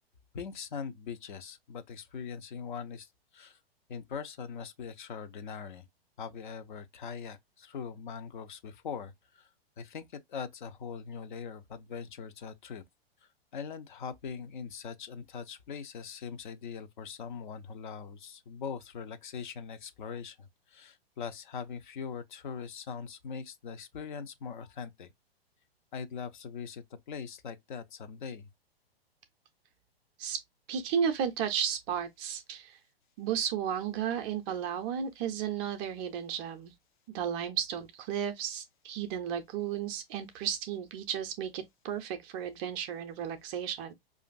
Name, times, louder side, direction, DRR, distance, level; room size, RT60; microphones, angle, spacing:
voice 1, 0.3-3.1 3.3-3.6 3.9-5.9 6.2-9.1 9.4-9.5 9.8-12.8 13.5-25.1 25.9-28.5, left 6 dB, 50° left, 0.7 m, -41 dB
voice 2, 30.7-32.8 33.2-36.7 37.1-43.9, right 8 dB, 25° right, 0.4 m, -33 dB
4.9 x 2.5 x 2.3 m
figure-of-eight pair, 110°, 31 cm